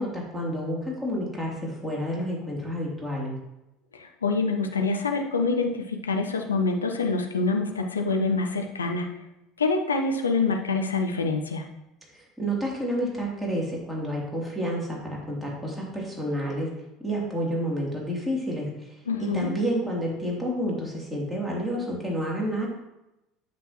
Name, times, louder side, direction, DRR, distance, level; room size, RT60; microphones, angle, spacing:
voice 1, 0.0-3.4 12.1-16.7 17.0-18.7 19.2-22.7, equal, 5° right, -4 dB, 3.0 m, -29 dB
voice 2, 4.0-9.1 9.6-11.6 19.1-19.5, left 3 dB, 85° left, 3 dB, 0.7 m, -26 dB
9.4 x 6.4 x 3.0 m, 0.92 s
figure-of-eight pair, 65°, 0 cm